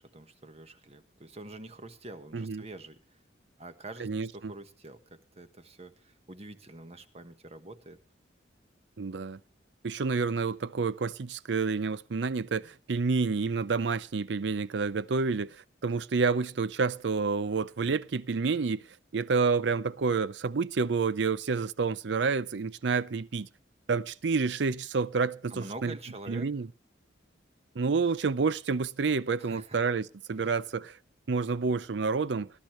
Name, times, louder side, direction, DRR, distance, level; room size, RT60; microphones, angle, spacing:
voice 1, 0.0-3.0 3.6-5.0 5.4-8.0 25.5-26.5 29.4-29.8 30.4-30.5, right 2 dB, 35° right, 1.3 m, -45 dB
voice 2, 2.3-2.6 4.0-4.5 9.0-9.4 9.8-15.5 15.8-18.8 19.1-23.5 23.9-25.9 26.3-26.7 27.8-30.9 31.3-32.5, right 4 dB, 70° right, 0.5 m, -29 dB
19.5 x 12.0 x 3.2 m
head